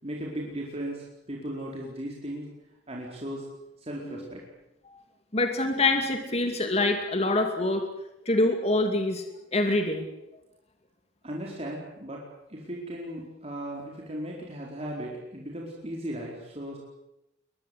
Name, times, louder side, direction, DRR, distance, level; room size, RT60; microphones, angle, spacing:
voice 1, 0.0-2.5 2.9-3.4 3.8-4.4 11.2-12.2 12.5-16.8, right 1 dB, 35° right, -3 dB, 4.6 m, -36 dB
voice 2, 5.3-7.8 8.3-9.2 9.5-10.0, left 2 dB, 35° left, 5 dB, 2.6 m, -25 dB
22.0 x 22.0 x 8.2 m, 0.88 s
head